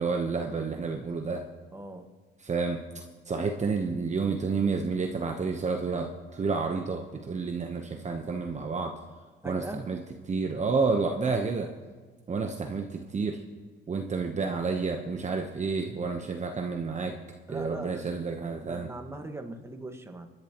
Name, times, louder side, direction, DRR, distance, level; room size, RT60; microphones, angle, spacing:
voice 1, 0.0-1.4 2.4-2.8 3.3-8.9 9.4-10.0 10.3-11.7 12.3-13.4 13.9-17.2 17.5-18.9, right 4 dB, 35° right, 3 dB, 1.0 m, -30 dB
voice 2, 1.7-2.1 9.4-9.8 17.5-18.0 18.6-20.3, right 2 dB, 15° right, 5 dB, 1.5 m, -40 dB
27.0 x 11.0 x 3.0 m, 1.5 s
cardioid pair, 90°, 20 cm